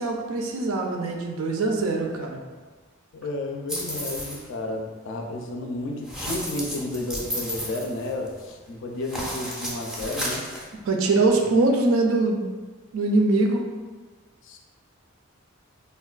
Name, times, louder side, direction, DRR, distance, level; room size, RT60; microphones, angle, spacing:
voice 1, 0.0-2.4 10.8-12.4 12.9-13.7, right 2 dB, 90° right, 2 dB, 0.4 m, -22 dB
voice 2, 3.1-10.5 14.4-14.6, left 2 dB, 65° left, 2 dB, 0.4 m, -32 dB
sound 1, 3.7-4.5 6.0-8.5 9.0-10.7, equal, 5° right, 0.4 m, -33 dB
3.5 x 2.2 x 2.3 m, 1.4 s
head